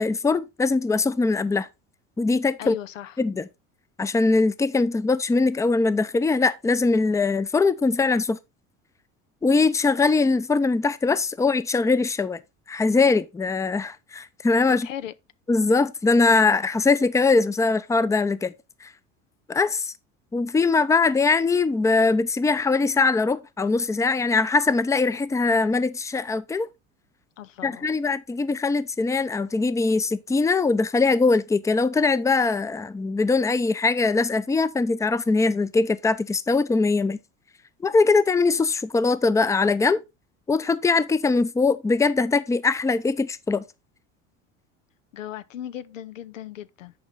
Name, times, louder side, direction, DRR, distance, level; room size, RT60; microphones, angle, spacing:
voice 1, 0.0-1.7 2.2-2.8 3.2-3.5 4.0-8.4 9.4-12.4 12.7-14.9 15.5-18.5 18.8-18.9 19.5-19.9 20.3-26.7 27.6-37.2 37.8-40.0 40.5-43.6, left 3 dB, 10° left, 0.5 m, -22 dB
voice 2, 2.6-3.1 14.7-15.1 27.4-28.0 45.1-46.9, left 11 dB, 90° left, 0.6 m, -37 dB
10.5 x 4.5 x 3.8 m
hypercardioid pair, 80°, 37 cm